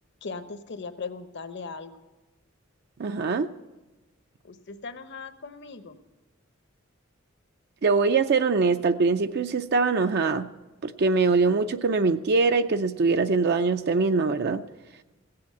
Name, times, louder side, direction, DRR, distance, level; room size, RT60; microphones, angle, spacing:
voice 1, 0.2-1.9 4.5-6.0, left 4 dB, 55° left, 9 dB, 0.9 m, -38 dB
voice 2, 3.0-3.5 7.8-10.5 10.8-14.6, right 4 dB, 50° right, 8 dB, 0.5 m, -23 dB
16.5 x 7.8 x 8.4 m, 1.1 s
head